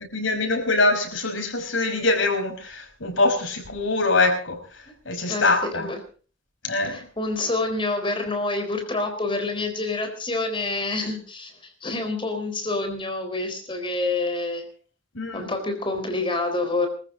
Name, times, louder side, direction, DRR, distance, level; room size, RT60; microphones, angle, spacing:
voice 1, 0.1-4.6 5.1-5.9 6.6-7.0 15.2-15.5, left 3 dB, 90° left, 4 dB, 5.3 m, -23 dB
voice 2, 5.3-6.0 6.8-14.6 15.3-16.9, left 2 dB, 25° left, 5 dB, 4.1 m, -27 dB
23.0 x 14.5 x 3.8 m, 0.39 s
head